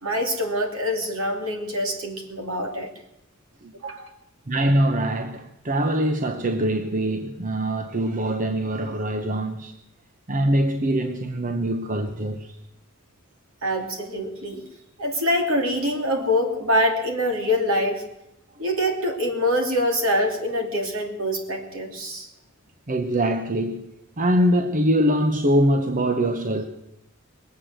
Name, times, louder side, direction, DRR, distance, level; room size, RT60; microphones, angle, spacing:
voice 1, 0.0-2.9 3.8-4.1 13.6-14.6 15.0-18.0 18.6-22.3, equal, 70° right, 2.9 m, -25 dB
voice 2, 4.5-9.7 10.3-12.6 22.9-23.8 24.2-26.7, right 1 dB, 40° right, 0.9 m, -23 dB
21.0 x 8.5 x 7.7 m
head